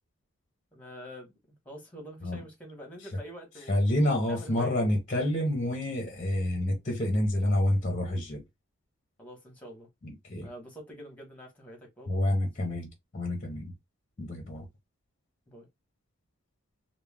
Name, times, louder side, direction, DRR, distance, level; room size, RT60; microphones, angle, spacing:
voice 1, 0.7-3.8 4.2-5.0 9.2-9.9 10.4-12.8 15.5-15.7, equal, 5° left, 0.9 m, -46 dB
voice 2, 3.7-8.4 10.0-10.5 12.1-12.9 13.1-13.7 14.2-14.7, left 1 dB, 30° left, 0.6 m, -28 dB
2.3 x 2.0 x 3.2 m
head